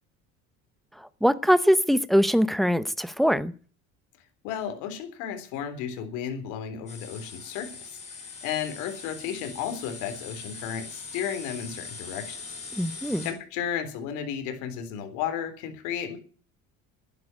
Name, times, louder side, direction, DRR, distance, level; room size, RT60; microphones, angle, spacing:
voice 1, 1.0-3.5 12.7-13.3, equal, ahead, 0.7 m, -22 dB
voice 2, 4.4-12.4 13.2-16.2, left 8 dB, 85° left, 3.7 m, -33 dB
sound 1, 6.9-13.3, left 4 dB, 25° left, 6.1 m, -41 dB
12.5 x 9.8 x 9.4 m
cardioid pair, 155°, 29 cm